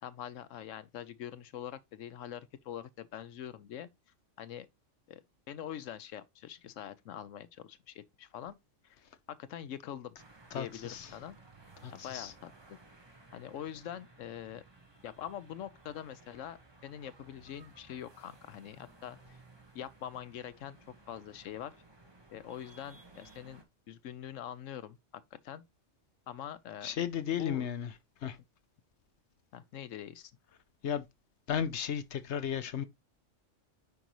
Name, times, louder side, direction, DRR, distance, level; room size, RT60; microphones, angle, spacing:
voice 1, 0.0-3.9 4.4-4.7 5.1-5.2 5.5-8.5 8.8-9.0 9.3-10.2 10.5-11.4 11.9-12.8 13.3-14.6 15.0-19.2 19.7-20.8 21.1-21.7 22.3-25.6 26.3-26.9 27.4-27.7 29.5-30.3, left 10 dB, 90° left, 1.1 m, -44 dB
sound 1, 10.2-23.6, right 3 dB, 20° right, 1.5 m, -58 dB
voice 2, 10.5-11.1 11.8-12.3 26.8-27.9 28.2-28.4 30.8-31.0 31.5-32.8, left 8 dB, 65° left, 1.0 m, -34 dB
8.3 x 5.3 x 3.1 m
omnidirectional pair, 1.3 m